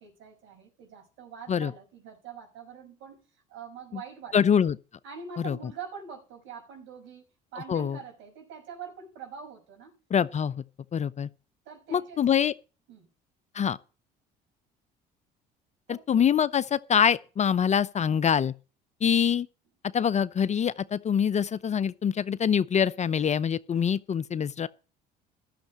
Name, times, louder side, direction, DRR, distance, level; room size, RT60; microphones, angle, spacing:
voice 1, 0.0-3.2 3.5-4.4 5.0-7.2 7.5-9.9 11.7-12.2 12.9-13.1 15.9-16.1, right 6 dB, 65° right, 5.5 m, -44 dB
voice 2, 4.3-4.8 5.4-5.6 7.7-8.0 10.1-10.6 10.9-11.3 11.9-12.5 13.5-13.8 15.9-18.5 19.0-19.5 19.9-24.7, left 8 dB, 35° left, 0.6 m, -25 dB
13.0 x 6.7 x 7.3 m
hypercardioid pair, 60°, 21 cm